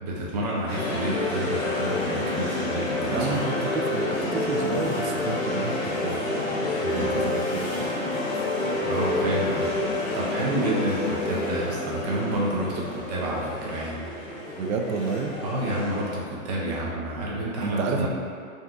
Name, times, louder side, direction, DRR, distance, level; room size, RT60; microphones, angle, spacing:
voice 1, 0.0-3.4 6.8-7.1 8.8-9.9 10.1-14.1 15.4-18.1, right 1 dB, 30° right, -4 dB, 0.5 m, -29 dB
sound 1, 0.7-16.1, left 2 dB, 35° left, 0.8 m, -28 dB
voice 2, 3.1-7.9 14.6-15.4 17.6-18.1, right 4 dB, 80° right, 3 dB, 0.5 m, -30 dB
3.6 x 2.6 x 2.3 m, 2.3 s
hypercardioid pair, 145°, 40 cm